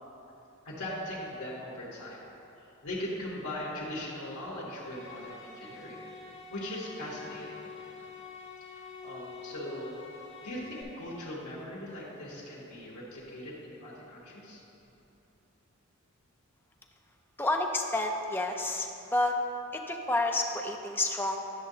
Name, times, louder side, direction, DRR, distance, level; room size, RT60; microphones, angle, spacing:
voice 1, 0.6-2.2 2.6-6.0 6.5-7.6 8.7-10.0 10.4-14.6, left 1 dB, 85° left, -6 dB, 1.2 m, -40 dB
sound 1, 4.8-10.8, left 5 dB, 60° left, 1.2 m, -46 dB
voice 2, 17.4-19.4 19.7-21.4, left 2 dB, 10° left, 2 dB, 0.4 m, -29 dB
10.5 x 6.2 x 2.8 m, 3.0 s
head